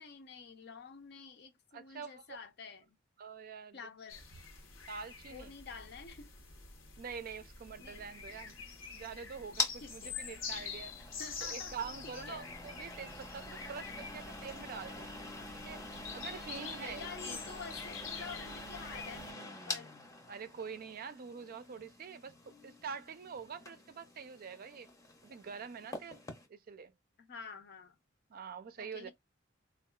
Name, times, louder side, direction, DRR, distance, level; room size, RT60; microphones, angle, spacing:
voice 1, 0.0-3.0 3.7-4.2 5.3-6.3 7.8-8.1 9.8-10.2 11.2-11.7 12.0-12.5 16.6-20.0 27.2-28.0 28.8-29.1, left 5 dB, 55° left, 0.6 m, -49 dB
voice 2, 1.7-2.4 3.2-3.8 4.9-5.5 7.0-8.6 8.9-10.9 11.4-15.1 15.6-15.8 16.1-17.4 20.3-22.3 22.6-24.9 25.2-26.2 26.5-26.9 28.3-29.1, right 6 dB, 45° right, 0.4 m, -45 dB
sound 1, 4.1-19.3, left 5 dB, 85° left, 1.0 m, -47 dB
sound 2, 7.7-26.5, left 3 dB, 15° left, 0.7 m, -45 dB
3.6 x 2.3 x 2.3 m
head